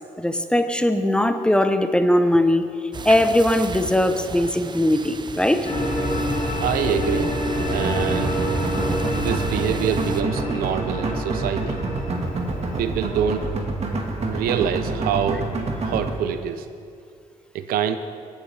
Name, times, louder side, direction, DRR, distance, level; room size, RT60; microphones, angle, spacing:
voice 1, 0.2-2.6 3.0-5.7, left 1 dB, 5° left, 9 dB, 0.7 m, -20 dB
sound 1, 2.9-10.2, right 4 dB, 30° right, 0.6 m, -36 dB
sound 2, 5.6-14.5, equal, 50° left, 2.7 m, -28 dB
voice 2, 6.6-7.4 7.7-8.4 9.1-11.8 12.8-13.5 14.3-15.5 15.8-16.7 17.5-18.0, right 8 dB, 85° right, 9 dB, 0.6 m, -25 dB
sound 3, 7.6-16.1, right 3 dB, 45° right, 1.6 m, -27 dB
17.5 x 7.3 x 3.3 m, 2.2 s
supercardioid pair, 70°, 15 cm